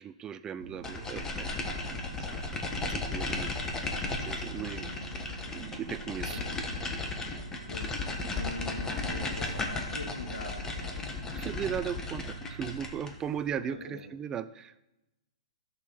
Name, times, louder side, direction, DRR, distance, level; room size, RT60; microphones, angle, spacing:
voice 1, 0.0-1.5 2.9-3.5 4.3-4.9 5.5-6.4 11.3-14.8, right 8 dB, 20° right, 14 dB, 0.4 m, -37 dB
sound 1, 0.6-14.0, right 6 dB, 70° right, 0.6 m, -47 dB
sound 2, 0.8-13.2, left 3 dB, 15° left, 1.2 m, -35 dB
voice 2, 1.7-2.5 5.5-5.7 6.1-6.5 7.6-11.1 13.6-14.1, left 2 dB, 80° left, -1 dB, 2.9 m, -44 dB
13.0 x 6.6 x 4.1 m, 0.94 s
hypercardioid pair, 115°, 3 cm